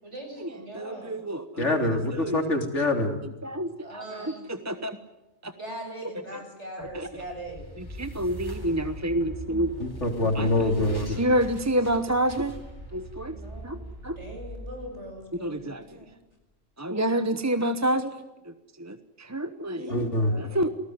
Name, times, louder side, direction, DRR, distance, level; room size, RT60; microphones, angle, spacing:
voice 1, 0.0-1.3 3.8-4.7 5.6-7.7 13.3-16.1 19.7-20.6, right 1 dB, 60° right, 3 dB, 7.6 m, -41 dB
voice 2, 0.7-1.8 2.1-2.5 3.4-5.0 5.4-5.5 6.8-7.1 7.8-9.7 10.3-12.6 12.9-13.4 13.6-13.8 14.0-14.2 15.4-16.0 16.8-20.1 20.4-20.7, right 1 dB, 15° right, 10 dB, 0.9 m, -29 dB
voice 3, 1.6-3.1 9.8-11.2 19.9-20.3, left 2 dB, 65° left, 4 dB, 3.6 m, -25 dB
sound 1, 6.8-16.0, equal, 15° left, 4.3 m, -41 dB
28.5 x 19.0 x 9.5 m, 0.99 s
omnidirectional pair, 1.3 m